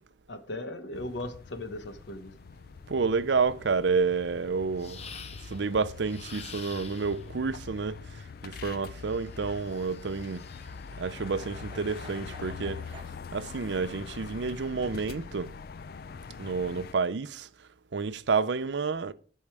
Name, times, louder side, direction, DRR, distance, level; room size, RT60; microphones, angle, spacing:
voice 1, 0.3-2.3, left 1 dB, 85° left, 1.3 m, -37 dB
sound 1, 0.9-16.9, left 5 dB, 55° left, 0.4 m, -43 dB
voice 2, 2.9-5.0 5.5-8.0 8.4-10.4 11.0-12.8 13.3-15.5 16.4-17.5 17.9-19.1, right 4 dB, 80° right, 0.6 m, -29 dB
sound 2, 4.8-5.7 6.0-7.3 9.0-10.9, left 6 dB, 35° left, 0.8 m, -47 dB
sound 3, 8.4-13.1, right 3 dB, 30° right, 0.8 m, -53 dB
10.5 x 5.5 x 4.7 m
head